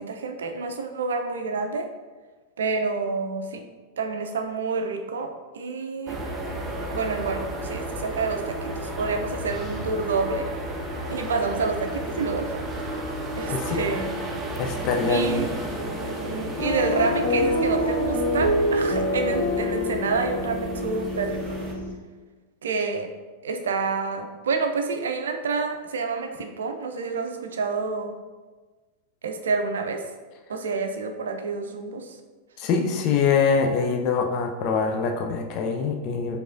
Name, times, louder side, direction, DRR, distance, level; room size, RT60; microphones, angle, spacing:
voice 1, 0.0-1.9 2.6-3.6 4.0-6.2 6.9-10.5 11.1-12.6 13.4-14.1 15.1-15.5 16.0-21.6 22.6-23.1 23.4-28.1 29.2-30.0 30.5-32.1, right 4 dB, 65° right, 5 dB, 0.4 m, -28 dB
sound 1, 6.1-21.7, right 1 dB, 20° right, 0.6 m, -33 dB
voice 2, 14.6-15.5 32.6-36.4, left 5 dB, 40° left, 3 dB, 0.4 m, -24 dB
sound 2, 16.6-21.9, left 1 dB, 70° left, 1.3 m, -26 dB
4.7 x 3.3 x 2.6 m, 1.3 s
figure-of-eight pair, 90°, 0 cm